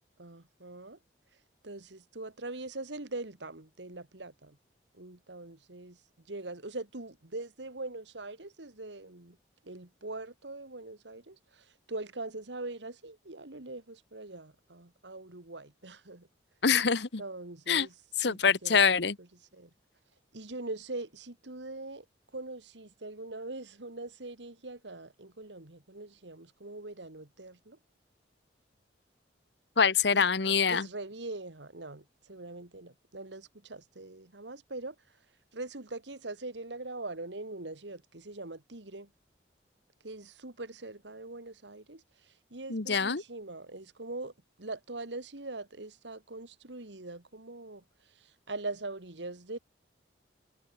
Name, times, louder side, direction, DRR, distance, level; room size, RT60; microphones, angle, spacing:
voice 1, 0.2-1.0 1.6-4.6 4.9-9.4 9.6-16.3 17.2-18.8 19.2-19.3 19.5-19.7 20.3-22.1 22.3-27.8 30.1-35.0 35.5-39.1 40.0-44.3 44.6-49.6, right 2 dB, 75° right, 2.1 m, -42 dB
voice 2, 16.6-17.2 17.7-17.9 18.2-19.2 29.8-30.9 42.7-43.2, left 6 dB, 65° left, 1.1 m, -25 dB
head